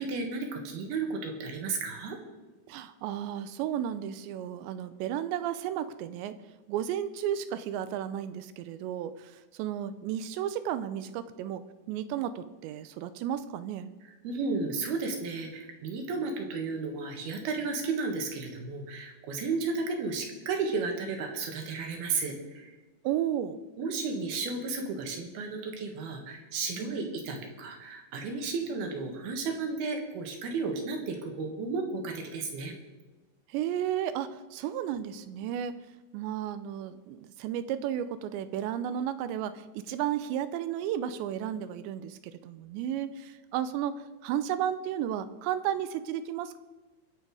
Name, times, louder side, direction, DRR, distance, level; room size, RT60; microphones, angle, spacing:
voice 1, 0.0-2.2 14.2-22.7 23.8-32.7, right 4 dB, 65° right, 3 dB, 3.3 m, -33 dB
voice 2, 2.7-6.4 6.7-13.9 23.0-23.6 26.8-27.1 33.5-35.8 36.1-44.0 44.2-46.6, right 10 dB, 80° right, 12 dB, 2.8 m, -33 dB
23.5 x 7.8 x 4.8 m, 1.2 s
omnidirectional pair, 5.2 m